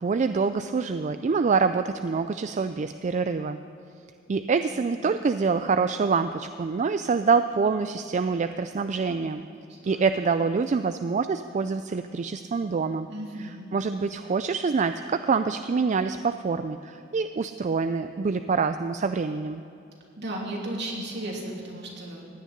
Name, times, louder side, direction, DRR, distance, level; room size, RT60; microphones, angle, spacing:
voice 1, 0.0-3.6 4.3-9.4 9.9-13.1 13.4-19.6, right 5 dB, 40° right, 10 dB, 0.4 m, -26 dB
voice 2, 9.6-10.2 13.1-13.7 20.2-22.3, right 1 dB, 60° right, -2 dB, 3.0 m, -35 dB
16.0 x 6.5 x 9.9 m, 2.7 s
head